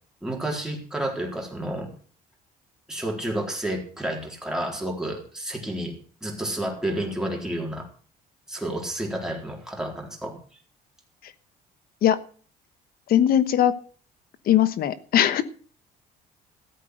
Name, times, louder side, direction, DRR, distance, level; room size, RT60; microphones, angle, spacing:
voice 1, 0.2-1.9 2.9-7.9 8.5-10.4, right 1 dB, 5° right, 0 dB, 4.0 m, -30 dB
voice 2, 13.1-13.7 14.5-15.4, left 11 dB, 60° left, 14 dB, 1.1 m, -20 dB
14.5 x 8.4 x 6.4 m, 0.42 s
cardioid pair, 110°, 17 cm